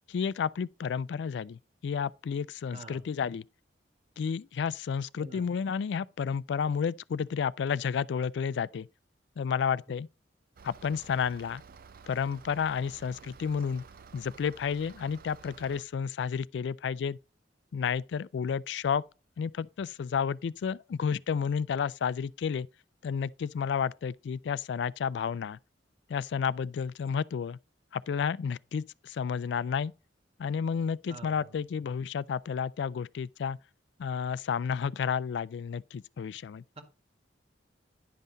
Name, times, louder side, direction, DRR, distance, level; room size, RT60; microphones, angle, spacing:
voice 1, 0.1-3.4 4.2-8.9 9.4-10.1 10.6-11.6 12.1-13.8 14.1-17.2 17.7-19.0 19.4-22.7 23.0-25.6 26.1-27.6 27.9-29.9 30.4-33.6 34.0-36.6, left 6 dB, 70° left, 0.3 m, -31 dB
voice 2, 2.7-3.0 5.2-5.5 31.1-31.6 36.7-36.8, right 3 dB, 35° right, 1.8 m, -47 dB
sound 1, 10.6-15.8, right 5 dB, 55° right, 0.5 m, -52 dB
10.5 x 5.6 x 3.9 m
head